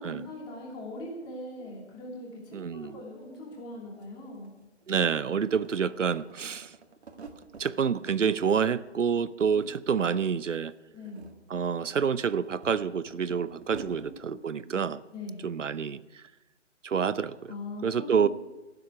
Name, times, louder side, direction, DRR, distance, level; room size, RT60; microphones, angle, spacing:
voice 1, 0.0-4.5 9.4-9.7 10.9-11.3 13.8-14.8 15.1-15.4 17.5-18.3, left 1 dB, 10° left, -1 dB, 2.8 m, -41 dB
voice 2, 2.5-3.0 4.9-6.7 7.6-10.7 11.5-15.0 15.4-16.2 16.8-17.5 17.8-18.3, right 6 dB, 85° right, 17 dB, 0.9 m, -28 dB
sound 1, 3.7-3.8 4.0-5.2 5.5-7.7 8.1-8.8 9.1-10.0 10.2-10.4 10.9-14.2, right 4 dB, 60° right, 2.0 m, -48 dB
15.5 x 7.9 x 9.4 m, 1.1 s
hypercardioid pair, 160°, 36 cm